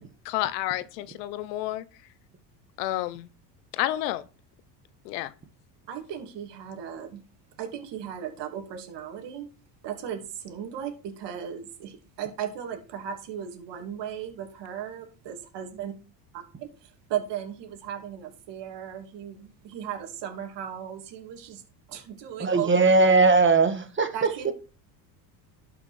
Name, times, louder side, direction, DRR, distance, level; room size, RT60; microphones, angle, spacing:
voice 1, 0.2-1.8 2.8-3.3 3.7-4.2 5.0-5.3, left 15 dB, 85° left, 1.0 m, -30 dB
voice 2, 5.9-7.2 7.6-9.5 9.8-15.9 16.3-21.6 21.9-22.7 24.1-24.5, right 9 dB, 60° right, 2.8 m, -36 dB
voice 3, 22.4-24.1 24.4-24.5, right 3 dB, 25° right, 1.6 m, -19 dB
12.0 x 6.0 x 4.3 m
supercardioid pair, 100°, 48 cm